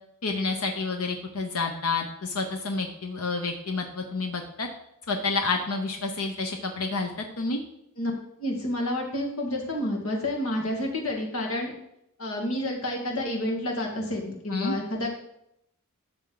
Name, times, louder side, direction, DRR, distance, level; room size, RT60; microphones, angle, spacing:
voice 1, 0.2-4.7 5.1-7.6 14.5-14.8, left 3 dB, 85° left, 4 dB, 1.0 m, -29 dB
voice 2, 8.4-11.7 12.2-15.1, left 1 dB, 65° left, 0 dB, 2.3 m, -29 dB
12.5 x 7.0 x 4.0 m, 0.77 s
head